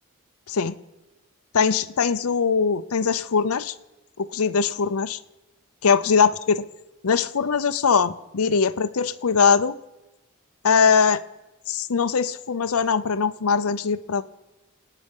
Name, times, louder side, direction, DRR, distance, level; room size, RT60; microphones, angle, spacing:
voice 1, 1.5-3.7 4.2-5.2 5.8-6.6 7.0-9.7 10.6-11.2 11.7-14.2, left 6 dB, 85° left, 11 dB, 0.6 m, -21 dB
27.0 x 9.3 x 5.4 m, 1.0 s
head